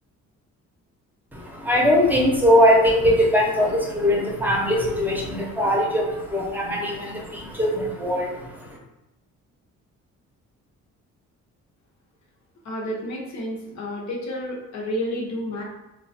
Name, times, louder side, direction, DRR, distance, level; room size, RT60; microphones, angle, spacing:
voice 1, 1.3-8.8, equal, 5° right, -2 dB, 0.7 m, -21 dB
voice 2, 12.6-15.6, equal, 65° left, -2 dB, 1.0 m, -30 dB
3.0 x 2.3 x 2.6 m, 0.96 s
cardioid pair, 90°, 30 cm